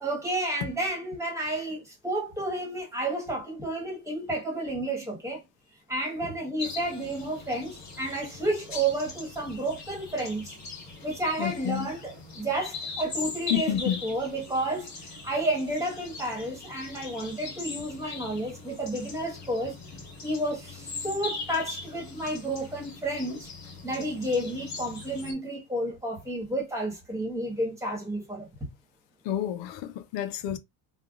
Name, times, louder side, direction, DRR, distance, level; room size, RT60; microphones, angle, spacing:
voice 1, 0.0-5.4 5.9-10.6 11.0-14.9 15.2-19.8 20.2-23.5 23.8-28.5, right 1 dB, 5° right, 1.4 m, -31 dB
sound 1, 6.6-25.3, left 4 dB, 35° left, 1.5 m, -40 dB
voice 2, 11.4-11.9 13.5-14.0 29.2-30.6, left 11 dB, 65° left, 0.6 m, -29 dB
3.4 x 2.3 x 2.4 m
cardioid pair, 135°, 48 cm